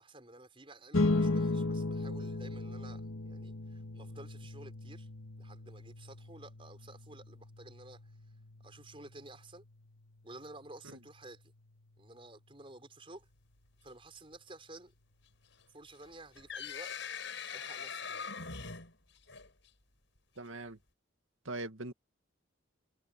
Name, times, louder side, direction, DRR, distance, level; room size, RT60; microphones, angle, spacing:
voice 1, 0.0-5.1 5.4-8.1 8.6-9.7 10.2-11.5 12.0-13.3 13.8-14.9 15.7-17.0 17.5-18.3, right 2 dB, 25° right, 5.6 m, -52 dB
sound 1, 0.9-11.7, left 2 dB, 85° left, 1.8 m, -37 dB
sound 2, 16.0-19.7, left 6 dB, 65° left, 6.3 m, -42 dB
voice 2, 20.4-20.8 21.5-21.9, right 2 dB, 80° right, 2.1 m, -40 dB
head